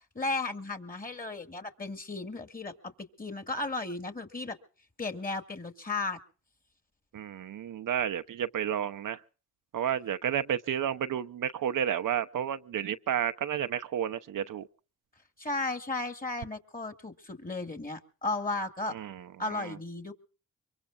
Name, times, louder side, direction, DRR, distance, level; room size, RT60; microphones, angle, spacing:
voice 1, 0.1-4.6 5.0-6.2 15.4-18.9 19.4-20.1, left 3 dB, 25° left, 2.2 m, -35 dB
voice 2, 7.1-9.2 9.7-14.7 18.9-19.3 19.5-19.8, right 9 dB, 65° right, 0.8 m, -31 dB
24.0 x 23.0 x 2.4 m
cardioid pair, 60°, 35 cm